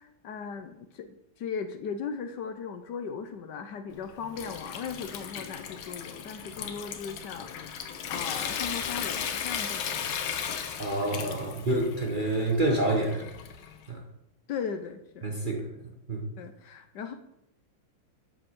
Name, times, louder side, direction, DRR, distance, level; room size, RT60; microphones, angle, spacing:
voice 1, 0.0-10.2 11.1-11.3 11.6-11.8 14.5-15.3 16.4-17.1, left 6 dB, 65° left, 9 dB, 1.3 m, -38 dB
Water tap faucet / Sink (filling or washing) / Trickle dribble, 3.9-13.8, left 8 dB, 90° left, 1.7 m, -36 dB
voice 2, 10.8-13.3 13.9-14.0 15.2-16.3, right 2 dB, 30° right, 1 dB, 1.1 m, -28 dB
7.8 x 7.7 x 6.2 m, 0.84 s
omnidirectional pair, 2.1 m